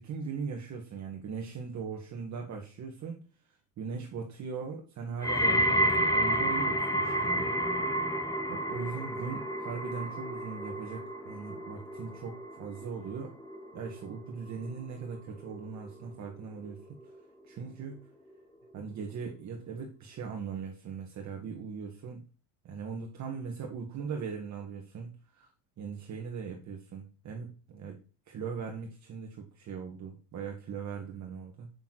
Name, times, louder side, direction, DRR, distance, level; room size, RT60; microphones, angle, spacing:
voice 1, 0.0-3.2 3.8-7.5 8.5-13.4 13.7-16.8 17.5-18.0 18.7-22.2 22.6-25.5 25.8-28.0 28.3-31.7, right 5 dB, 40° right, 1 dB, 2.0 m, -39 dB
sound 1, 5.2-16.4 16.7-17.2 17.9-18.0, right 1 dB, 10° left, 1.2 m, -31 dB
7.1 x 7.0 x 8.0 m, 0.35 s
cardioid pair, 150°, 43 cm